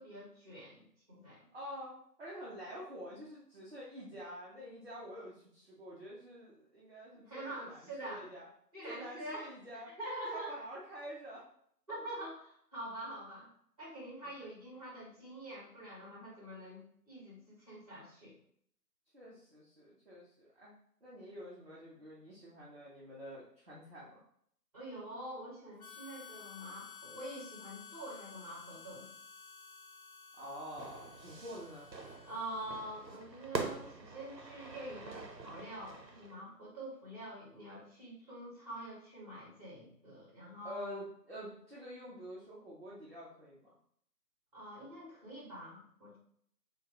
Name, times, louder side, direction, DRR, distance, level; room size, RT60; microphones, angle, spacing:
voice 1, 0.0-1.4 7.3-8.3 8.7-9.5 10.0-10.6 11.9-13.5 13.8-18.4 24.7-29.1 32.2-41.0 44.5-46.2, right 1 dB, 20° right, -5 dB, 1.3 m, -46 dB
voice 2, 1.5-8.5 8.8-9.9 10.2-11.5 14.2-14.3 19.1-20.7 21.0-24.2 30.3-31.9 40.6-43.8, equal, 40° right, -7 dB, 0.7 m, -47 dB
Harmonica, 25.8-33.1, left 6 dB, 60° left, 0.5 m, -53 dB
Fire / Fireworks, 30.8-36.3, right 4 dB, 85° right, 0.8 m, -44 dB
4.2 x 2.3 x 2.9 m, 0.67 s
figure-of-eight pair, 155°, 49 cm